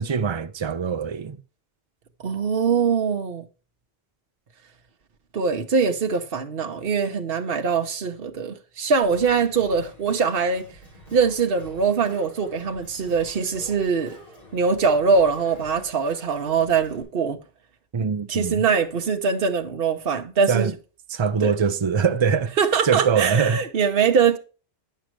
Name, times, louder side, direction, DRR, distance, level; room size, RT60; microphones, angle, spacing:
voice 1, 0.0-1.4 17.9-18.6 20.5-20.7 21.1-22.5 22.8-23.6, right 6 dB, 35° right, 0.6 m, -23 dB
voice 2, 2.2-3.4 5.3-10.7 11.1-14.2 14.5-17.4 18.3-20.7 21.4-21.5 22.6-24.4, right 5 dB, 65° right, 1.2 m, -22 dB
Singing, 9.0-17.0, equal, 40° left, 3.6 m, -46 dB
10.5 x 6.4 x 4.6 m
omnidirectional pair, 1.1 m